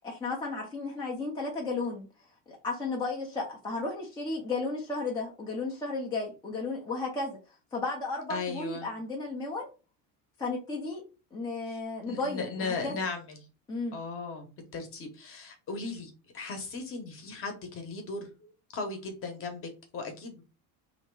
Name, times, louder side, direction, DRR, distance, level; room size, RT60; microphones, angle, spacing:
voice 1, 0.0-2.1 2.5-7.4 7.7-9.7 10.4-11.0 11.3-13.0 13.7-14.0, left 3 dB, 10° left, -2 dB, 0.5 m, -34 dB
voice 2, 8.3-8.9 12.1-13.2 13.9-14.5 14.7-20.4, left 4 dB, 30° left, 5 dB, 0.9 m, -37 dB
3.1 x 2.8 x 4.5 m, 0.31 s
cardioid pair, 180°, 42 cm